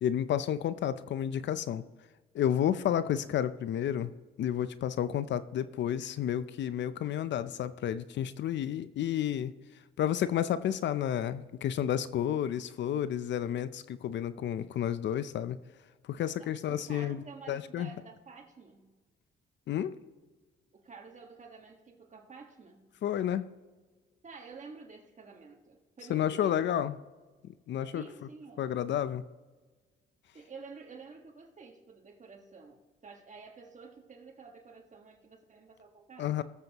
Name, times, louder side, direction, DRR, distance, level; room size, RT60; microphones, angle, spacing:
voice 1, 0.0-1.8 2.3-4.1 4.4-9.5 10.0-15.6 16.1-17.9 19.7-19.9 23.0-23.5 26.1-27.0 27.4-28.0 28.6-29.2 36.2-36.4, left 10 dB, 65° left, 14 dB, 0.6 m, -31 dB
voice 2, 16.4-18.9 20.7-22.9 24.2-26.8 27.9-28.7 30.3-36.3, right 4 dB, 40° right, 2 dB, 1.5 m, -50 dB
20.0 x 7.7 x 3.0 m, 1.3 s
cardioid pair, 90°, 20 cm